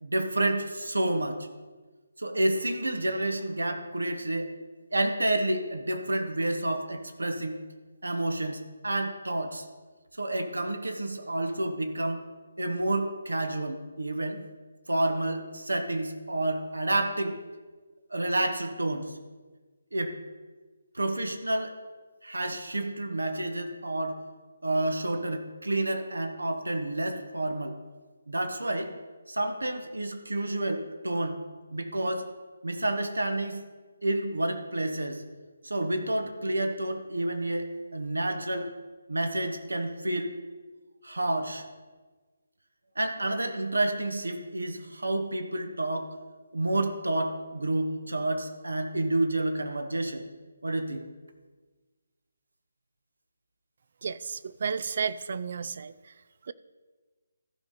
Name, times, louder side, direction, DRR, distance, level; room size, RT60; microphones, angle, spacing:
voice 1, 0.0-1.4 2.2-4.5 4.9-7.6 8.0-9.6 10.2-12.2 12.6-14.4 14.9-17.4 18.1-19.1 19.9-20.1 20.9-21.7 22.2-24.2 24.6-27.7 28.3-28.9 29.3-31.4 31.7-32.3 32.6-33.6 34.0-35.2 35.6-38.7 39.1-40.3 41.0-41.6 43.0-46.1 46.5-50.2 50.6-51.0, right 1 dB, 75° right, 6 dB, 1.2 m, -29 dB
voice 2, 54.0-55.9 56.5-56.6, right 6 dB, 45° right, 15 dB, 0.4 m, -32 dB
15.0 x 5.1 x 4.1 m, 1.3 s
figure-of-eight pair, 145°, 0 cm